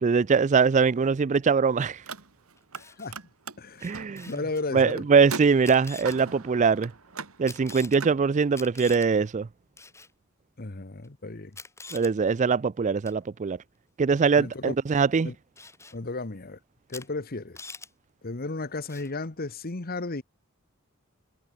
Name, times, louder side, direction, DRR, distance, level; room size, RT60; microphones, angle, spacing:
voice 1, 0.0-2.0 3.8-4.3 4.7-6.9 7.4-9.5 11.9-13.6 14.0-15.3, right 5 dB, 35° right, 0.4 m, -22 dB
Car, 1.9-2.8 3.1-8.2, right 5 dB, 80° right, 3.0 m, -40 dB
Camera, 2.6-3.1 3.8-4.6 5.5-6.2 7.5-8.0 8.5-9.1 9.8-10.1 11.0-11.1 11.5-12.1 13.1-13.2 15.6-16.0 16.9-17.1 17.3-17.9 18.9-19.1, left 3 dB, 15° left, 5.1 m, -45 dB
voice 2, 2.8-3.2 3.6-3.9 4.3-5.0 10.6-11.6 14.3-14.7 15.2-15.3 15.9-16.6 16.9-17.6 18.2-20.2, left 3 dB, 45° left, 1.2 m, -34 dB
head